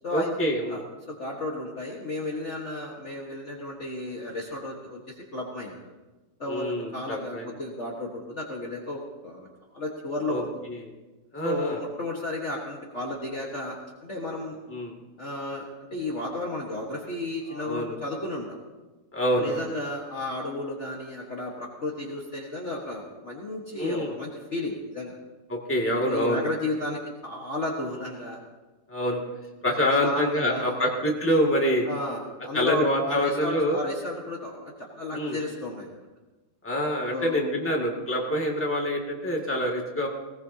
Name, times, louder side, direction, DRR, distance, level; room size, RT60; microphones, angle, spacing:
voice 1, 0.1-0.8 6.5-7.5 10.3-10.4 11.3-11.8 14.7-14.9 17.5-18.0 19.1-19.6 23.8-24.1 25.5-26.4 28.9-29.2 29.6-31.9 32.5-33.8 35.1-35.4 36.6-40.1, equal, 5° left, -1 dB, 2.0 m, -26 dB
voice 2, 1.1-5.8 6.4-9.5 9.7-10.6 11.4-14.6 15.2-18.6 19.4-25.2 26.0-28.4 29.9-30.9 31.9-35.9 37.1-37.4, left 2 dB, 40° left, -3 dB, 1.7 m, -33 dB
19.5 x 18.5 x 2.8 m, 1.2 s
omnidirectional pair, 2.2 m